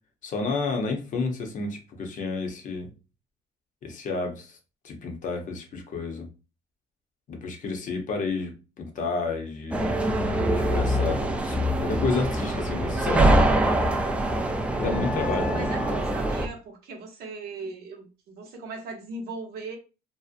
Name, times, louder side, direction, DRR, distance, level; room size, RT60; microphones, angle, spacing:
voice 1, 0.2-2.9 3.8-4.6 4.8-6.3 7.3-9.8 10.5-13.3 14.8-16.0, left 4 dB, 50° left, 0.7 m, -31 dB
sound 1, 9.7-16.5, right 1 dB, 5° right, 0.3 m, -24 dB
voice 2, 15.2-19.8, right 3 dB, 65° right, 0.7 m, -38 dB
2.6 x 2.0 x 2.4 m
cardioid pair, 110°, 17 cm